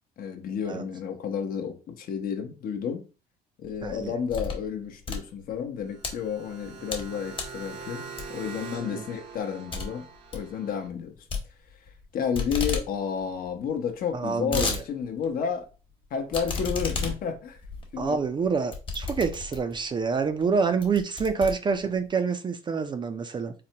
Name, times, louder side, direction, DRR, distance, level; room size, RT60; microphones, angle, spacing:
voice 1, 0.2-3.0 3.6-11.1 12.1-15.7 16.1-17.6 17.9-18.2, left 7 dB, 60° left, 0.7 m, -31 dB
sound 1, 3.7-4.7 5.0-6.1 6.6-7.1 7.3-7.6 8.2-8.5 8.9-9.0 9.3-9.4 9.7-9.9 10.2-10.5 11.3-12.0 12.3-12.9 13.2-13.3 13.5-13.6 14.1-14.8 15.2-15.3 16.3-19.8 20.4-20.5 20.8-22.1, left 4 dB, 30° left, 1.0 m, -32 dB
voice 2, 3.8-4.1 8.9-9.0 14.1-14.8 18.0-23.5, right 5 dB, 25° right, 0.4 m, -27 dB
sound 2, 5.8-10.9, right 5 dB, 75° right, 0.7 m, -43 dB
4.1 x 2.1 x 2.7 m
cardioid pair, 110°, 17 cm